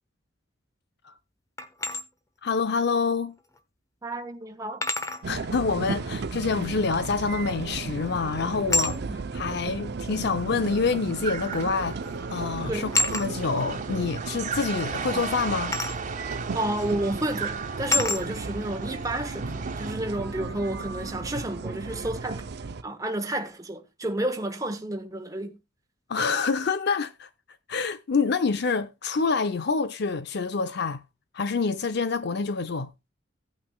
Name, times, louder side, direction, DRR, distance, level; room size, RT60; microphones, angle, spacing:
sound 1, 1.6-2.0 3.6-3.7 4.8-5.2 7.5-7.8 8.7-9.0 10.2-10.3 11.5-11.7 12.0-12.3 12.9-13.3 15.7-16.0 16.8-16.9 17.9-18.2, left 2 dB, 15° left, 0.9 m, -27 dB
voice 1, 2.4-3.4 5.3-9.0 9.3-12.0 12.3-15.8 26.1-27.3 27.7-31.0 31.3-32.9, left 4 dB, 60° left, 0.6 m, -27 dB
voice 2, 4.0-4.8 8.8-9.2 12.7-13.0 16.5-22.4 22.8-25.6, right 1 dB, 20° right, 1.1 m, -31 dB
sound 2, 5.2-22.8, right 4 dB, 60° right, 0.5 m, -35 dB
sound 3, 11.2-19.9, right 6 dB, 40° right, 1.5 m, -37 dB
16.0 x 8.9 x 2.2 m
head